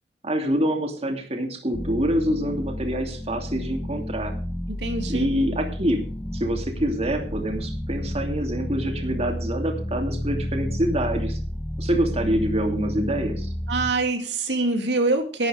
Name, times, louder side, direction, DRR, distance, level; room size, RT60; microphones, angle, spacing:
voice 1, 0.2-4.3 5.1-6.0 6.3-11.4 11.8-13.5, equal, 35° right, 4 dB, 2.7 m, -26 dB
sound 1, 1.7-13.9, equal, 10° left, 0.8 m, -31 dB
voice 2, 4.8-5.3 13.7-15.5, right 3 dB, 85° right, 4 dB, 2.5 m, -24 dB
12.0 x 12.0 x 5.1 m, 0.41 s
head